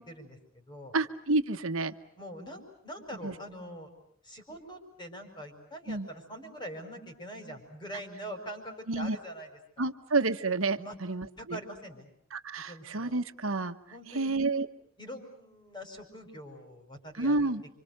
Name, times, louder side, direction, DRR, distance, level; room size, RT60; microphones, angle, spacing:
voice 1, 0.0-0.9 2.2-3.9 4.2-9.5 9.8-9.9 10.8-11.0 11.4-12.1 12.6-13.1 13.9-14.3 15.0-17.5, equal, 20° left, 5 dB, 5.4 m, -44 dB
voice 2, 0.9-1.9 3.2-3.3 5.9-6.1 8.9-9.2 9.8-11.6 12.3-13.8 14.1-14.7 17.2-17.6, right 3 dB, 75° right, 10 dB, 1.2 m, -29 dB
30.0 x 26.0 x 6.7 m, 0.63 s
head